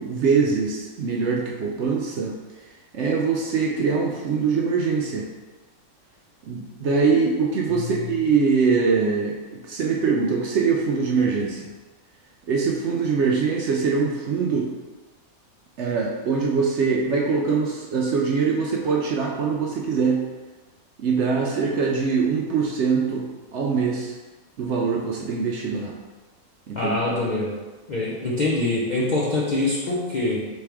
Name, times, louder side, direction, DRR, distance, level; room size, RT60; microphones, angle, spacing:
voice 1, 0.0-2.4 2.9-5.3 6.4-11.7 12.5-14.7 15.8-20.3 21.0-24.2 24.6-26.0 26.7-27.1, right 5 dB, 65° right, -1 dB, 0.7 m, -23 dB
voice 2, 26.7-27.6 27.9-30.5, left 2 dB, 60° left, -6 dB, 0.4 m, -24 dB
4.4 x 3.3 x 3.4 m, 1.3 s
omnidirectional pair, 1.5 m